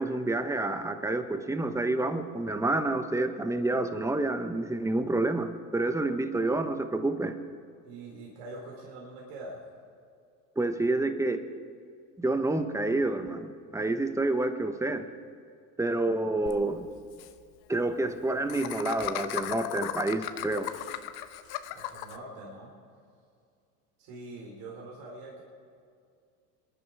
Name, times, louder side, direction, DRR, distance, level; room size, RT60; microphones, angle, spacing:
voice 1, 0.0-7.3 10.6-11.4 12.2-15.0 15.8-16.9 17.7-20.7, right 2 dB, 5° right, 8 dB, 1.2 m, -28 dB
voice 2, 7.9-9.6 21.7-22.7 24.0-25.4, right 2 dB, 70° right, -2 dB, 4.2 m, -44 dB
Laughter, 16.5-16.6 16.8-16.9 17.1-17.3 18.5-22.2, left 13 dB, 55° left, 1.1 m, -36 dB
26.0 x 11.0 x 4.9 m, 2.3 s
supercardioid pair, 100°, 44 cm